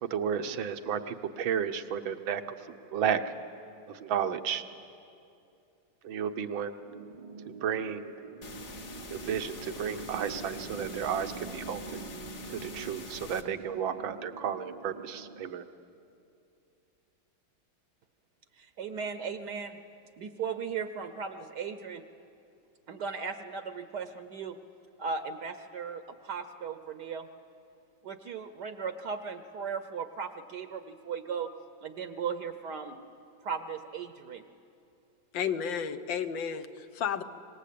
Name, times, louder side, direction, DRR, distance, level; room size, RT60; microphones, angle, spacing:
voice 1, 0.0-2.4 2.9-3.2 3.9-4.6 6.0-6.7 7.5-8.1 9.1-12.0 12.5-15.6, right 8 dB, 90° right, 9 dB, 1.7 m, -32 dB
sound 1, 6.8-15.5, right 4 dB, 40° right, 0.6 m, -45 dB
sound 2, 8.4-13.4, left 3 dB, 40° left, 1.4 m, -45 dB
voice 2, 18.6-19.8 20.2-22.0 22.9-24.6 25.0-27.3 28.0-31.5 31.8-33.0 33.4-34.4, right 6 dB, 65° right, 9 dB, 1.3 m, -37 dB
voice 3, 35.3-37.2, left 7 dB, 75° left, 9 dB, 1.7 m, -32 dB
25.5 x 20.0 x 8.5 m, 2.6 s
omnidirectional pair, 2.1 m